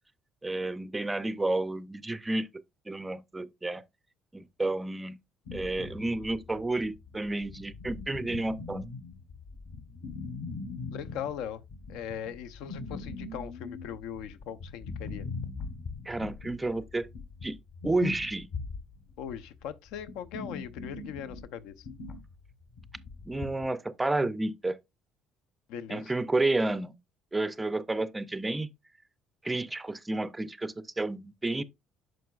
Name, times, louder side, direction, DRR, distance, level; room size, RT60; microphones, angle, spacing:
voice 1, 0.4-2.5 2.9-3.8 4.3-5.2 5.5-8.9 16.1-17.1 17.4-17.6 17.8-18.5 23.2-24.8 25.9-26.9 27.3-28.7 29.4-31.6, right 2 dB, 10° right, 0.4 m, -31 dB
sound 1, 5.5-23.7, left 4 dB, 50° left, 1.2 m, -41 dB
voice 2, 10.9-11.6 11.9-15.3 19.2-21.9 25.7-26.1, left 9 dB, 80° left, 0.6 m, -39 dB
9.2 x 6.2 x 2.4 m
cardioid pair, 150°, 0 cm